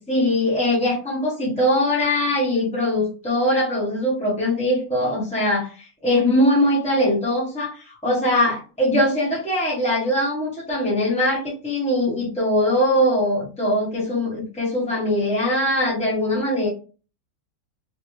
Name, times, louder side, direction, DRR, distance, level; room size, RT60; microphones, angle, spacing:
voice 1, 0.1-16.7, left 1 dB, 5° left, -6 dB, 0.6 m, -21 dB
3.0 x 2.7 x 3.0 m, 0.35 s
omnidirectional pair, 1.9 m